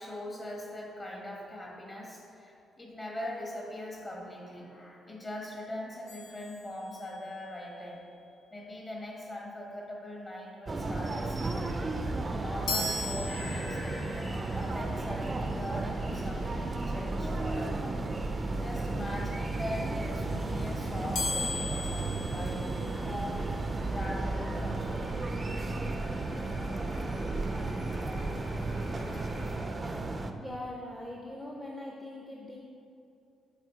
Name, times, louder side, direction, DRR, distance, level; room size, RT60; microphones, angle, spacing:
voice 1, 0.0-8.0 8.5-11.8 12.4-17.8 18.5-22.8 23.0-23.4 23.9-25.2, left 1 dB, 30° left, -2 dB, 1.5 m, -41 dB
sound 1, 6.1-7.4 12.7-14.2 21.1-23.3, left 3 dB, 75° left, 0.9 m, -37 dB
sound 2, 10.7-30.3, right 2 dB, 25° right, 0.4 m, -33 dB
sound 3, 13.3-29.6, left 1 dB, 60° left, 1.4 m, -48 dB
voice 2, 30.4-32.6, left 1 dB, 10° left, -2 dB, 0.6 m, -41 dB
7.3 x 4.7 x 3.9 m, 2.6 s
cardioid pair, 105°, 0 cm